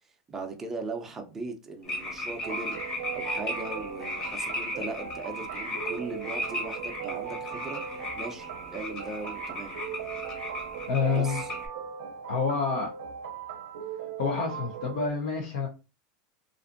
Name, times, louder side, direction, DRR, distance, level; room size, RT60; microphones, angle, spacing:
voice 1, 0.3-9.7 11.1-11.5, right 3 dB, 10° right, 0.5 m, -39 dB
sound 1, 1.8-11.7, left 1 dB, 35° left, 1.0 m, -36 dB
sound 2, 2.4-15.1, right 8 dB, 90° right, 0.5 m, -39 dB
voice 2, 10.9-11.4 12.3-12.9 14.2-15.7, left 5 dB, 75° left, 0.7 m, -28 dB
2.6 x 2.5 x 2.5 m
supercardioid pair, 160°, 3 cm